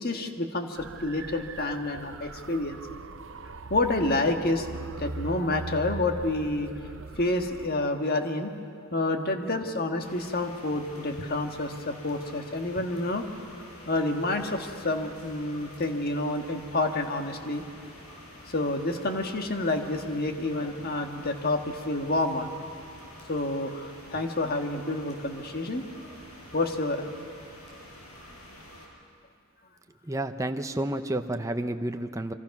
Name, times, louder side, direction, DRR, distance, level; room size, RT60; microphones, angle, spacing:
voice 1, 0.0-2.8 3.7-4.7 5.0-6.7 7.2-8.5 8.9-13.3 13.9-17.6 18.5-22.5 23.3-25.8 26.5-27.1, left 2 dB, 45° left, 5 dB, 1.6 m, -29 dB
sound 1, 0.8-7.7, right 3 dB, 60° right, 0.8 m, -40 dB
sound 2, 10.0-28.9, left 1 dB, 80° left, 5.5 m, -48 dB
voice 2, 30.1-32.3, right 1 dB, 15° right, 7 dB, 0.7 m, -30 dB
27.0 x 24.5 x 6.0 m, 2.5 s
head